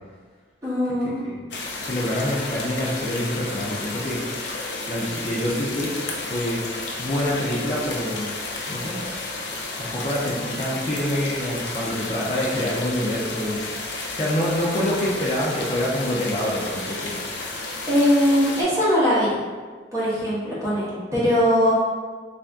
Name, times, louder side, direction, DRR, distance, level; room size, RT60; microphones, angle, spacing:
voice 1, 0.6-1.2 17.9-19.3 19.9-21.7, equal, 15° right, -10 dB, 1.1 m, -20 dB
sound 1, 1.5-18.6, left 3 dB, 80° left, 0.6 m, -32 dB
voice 2, 1.8-6.6 7.0-8.3 8.7-9.0 9.8-13.6 14.1-17.2, left 1 dB, 35° left, -5 dB, 0.5 m, -26 dB
3.3 x 2.6 x 3.4 m, 1.5 s
head